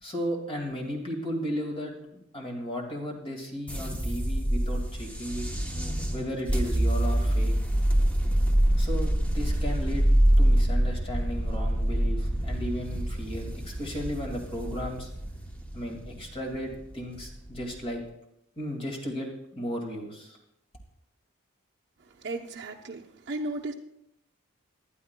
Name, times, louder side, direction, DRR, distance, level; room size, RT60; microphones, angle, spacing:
voice 1, 0.0-1.9 2.3-5.5 6.1-7.6 8.8-10.1 10.4-15.1 15.7-18.0 18.6-20.4, equal, 25° left, 1 dB, 2.0 m, -35 dB
sound 1, 3.7-17.9, right 1 dB, 5° left, 0.9 m, -26 dB
voice 2, 22.1-23.7, right 2 dB, 55° right, -1 dB, 0.7 m, -35 dB
19.5 x 11.5 x 2.2 m, 0.80 s
head